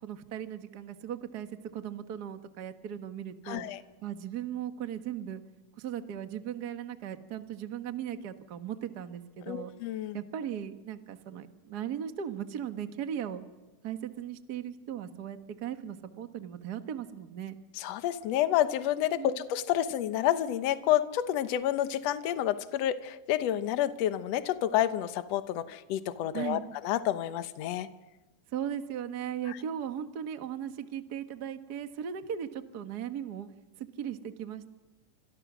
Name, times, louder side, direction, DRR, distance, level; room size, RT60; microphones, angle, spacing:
voice 1, 0.0-3.6 4.0-5.4 5.7-9.7 10.1-13.4 13.8-17.6 19.1-19.4 26.3-26.6 28.5-33.5 33.8-34.7, right 9 dB, 60° right, 7 dB, 1.0 m, -37 dB
voice 2, 3.5-3.8 9.5-10.2 17.8-27.9, left 12 dB, 65° left, 10 dB, 1.8 m, -29 dB
29.5 x 26.0 x 6.2 m, 1.1 s
omnidirectional pair, 4.0 m